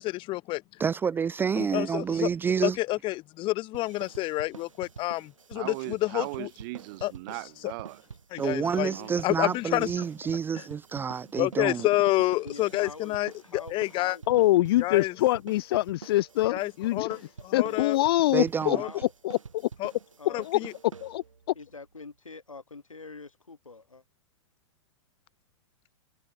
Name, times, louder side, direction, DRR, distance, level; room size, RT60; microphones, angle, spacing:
voice 1, 0.0-0.6 1.6-2.3 2.6-6.5 7.0-7.1 7.6-7.7 8.3-8.9 9.2-9.9 10.5-10.6 11.4-14.2 14.8-15.2 16.5-18.0 18.7-18.9 19.8-19.9 20.3-20.7, left 18 dB, 30° left, 1.1 m, -29 dB
voice 2, 0.8-2.8 8.4-11.9 18.3-18.8, right 6 dB, 10° right, 0.5 m, -28 dB
sound 1, 3.7-21.5, right 5 dB, 75° right, 5.6 m, -46 dB
voice 3, 5.5-8.0 8.6-9.1, right 25 dB, 45° right, 1.5 m, -39 dB
voice 4, 12.4-14.2 17.6-17.9 18.8-19.1 20.2-20.7 21.5-24.0, left 3 dB, 85° left, 2.5 m, -45 dB
voice 5, 14.3-17.2 17.5-18.8 19.2-19.4 20.5-20.6 21.0-21.2, left 16 dB, 50° left, 0.4 m, -24 dB
figure-of-eight pair, 105°, 17 cm